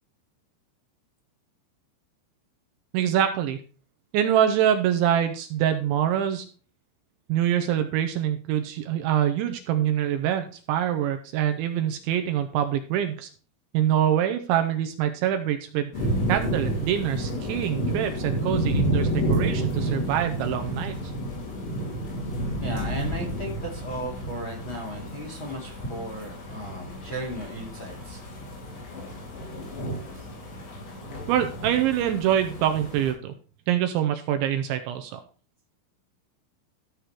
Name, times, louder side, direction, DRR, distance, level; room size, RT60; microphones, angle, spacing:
voice 1, 2.9-3.6 4.1-6.5 7.3-13.3 13.7-21.1 31.3-33.3 33.7-35.2, right 10 dB, 80° right, 7 dB, 2.8 m, -25 dB
sound 1, 15.9-33.1, right 1 dB, 80° left, 6.2 m, -30 dB
voice 2, 22.6-28.2 30.1-30.3, equal, 45° left, 1 dB, 1.7 m, -35 dB
14.0 x 6.6 x 4.5 m, 0.38 s
omnidirectional pair, 6.0 m